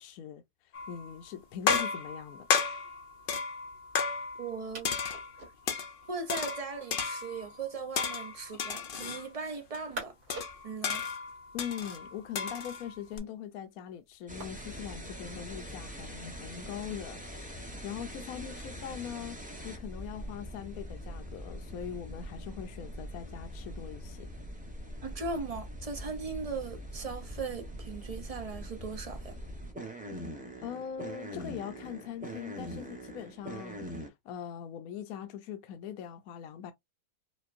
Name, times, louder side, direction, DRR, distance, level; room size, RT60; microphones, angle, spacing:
voice 1, 0.0-2.5 11.5-24.3 30.6-36.7, left 9 dB, 75° left, 1.0 m, -42 dB
sound 1, 0.7-1.1 1.7-4.6 4.8-5.9 6.3-7.5 8.0-9.3 9.7-9.8 10.3-13.2, left 5 dB, 55° left, 0.6 m, -33 dB
sound 2, 1.1-16.5, right 2 dB, 75° right, 2.2 m, -52 dB
voice 2, 4.4-5.0 6.1-10.2 10.6-11.1 25.0-29.4, right 4 dB, 45° right, 0.4 m, -38 dB
sound 3, 14.3-34.1, equal, 5° right, 0.7 m, -43 dB
5.0 x 2.3 x 2.5 m
omnidirectional pair, 1.6 m